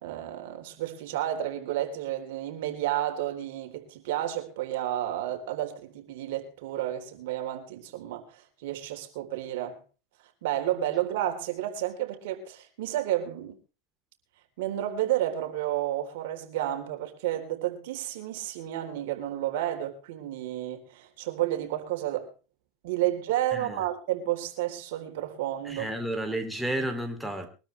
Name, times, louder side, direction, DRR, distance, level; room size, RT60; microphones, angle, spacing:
voice 1, 0.0-9.8 10.4-13.5 14.6-22.3 22.8-25.9, right 13 dB, 75° right, 3.6 m, -31 dB
voice 2, 25.6-27.5, right 1 dB, ahead, 2.8 m, -31 dB
23.0 x 13.0 x 3.3 m
supercardioid pair, 120°, 0 cm